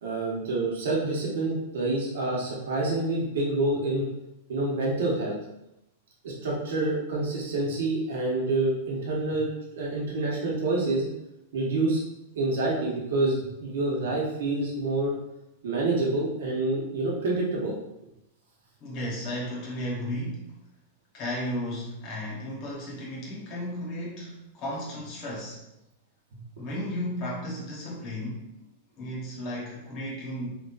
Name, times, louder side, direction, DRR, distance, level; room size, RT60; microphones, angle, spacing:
voice 1, 0.0-4.1 4.5-5.4 6.2-11.1 11.5-12.0 12.3-15.1 15.6-17.7 26.3-26.4, right 2 dB, 70° right, -4 dB, 1.1 m, -27 dB
voice 2, 18.8-20.5 21.1-25.6 26.6-28.4 29.0-30.5, equal, 25° left, -5 dB, 1.0 m, -34 dB
3.9 x 3.1 x 2.5 m, 0.90 s
supercardioid pair, 175°, 0 cm